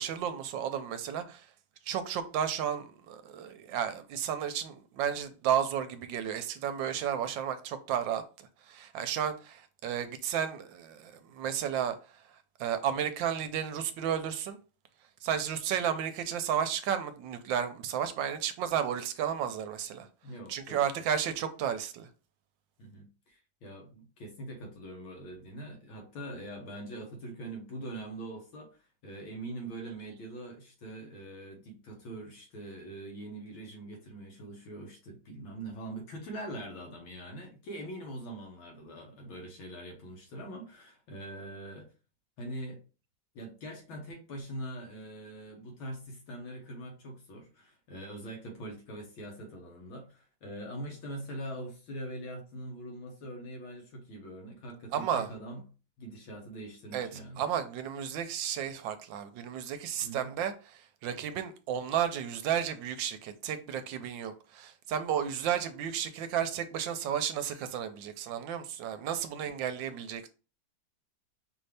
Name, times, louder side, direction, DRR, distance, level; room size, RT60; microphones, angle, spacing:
voice 1, 0.0-1.4 1.9-8.2 8.7-12.0 12.6-14.6 15.2-20.1 20.5-22.1 54.9-55.3 56.9-70.3, right 9 dB, 75° right, 1.2 m, -33 dB
voice 2, 20.2-21.0 22.8-28.7 29.0-41.9 42.4-42.8 43.4-55.6 56.0-57.4 60.0-60.3, right 1 dB, 85° left, 2.1 m, -43 dB
5.4 x 2.7 x 3.3 m
omnidirectional pair, 2.2 m